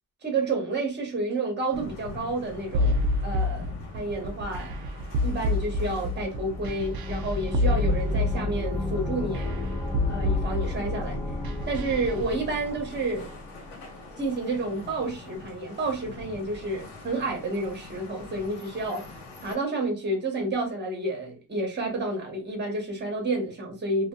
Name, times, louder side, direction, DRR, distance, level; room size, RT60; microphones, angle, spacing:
voice 1, 0.2-3.0 3.2-3.7 3.9-4.7 5.2-9.6 10.1-11.2 11.7-13.3 14.2-19.0 19.4-24.1, right 2 dB, 25° right, 0.9 m, -30 dB
sound 1, 1.7-19.6, left 3 dB, 80° left, 1.2 m, -45 dB
sound 2, 2.7-12.3, left 1 dB, 60° right, 0.5 m, -28 dB
sound 3, 5.2-14.1, left 2 dB, 10° left, 0.3 m, -34 dB
2.7 x 2.5 x 2.3 m
wide cardioid pair, 150°, 40 cm